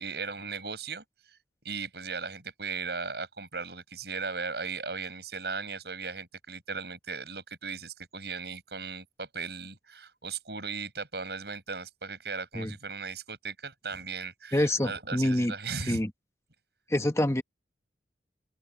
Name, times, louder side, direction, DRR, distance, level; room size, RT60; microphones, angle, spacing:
voice 1, 0.0-1.4 1.6-16.0, right 4 dB, 65° right, 7.2 m, -37 dB
voice 2, 14.5-15.5 15.9-16.1 16.9-17.4, left 1 dB, 15° left, 1.2 m, -26 dB
head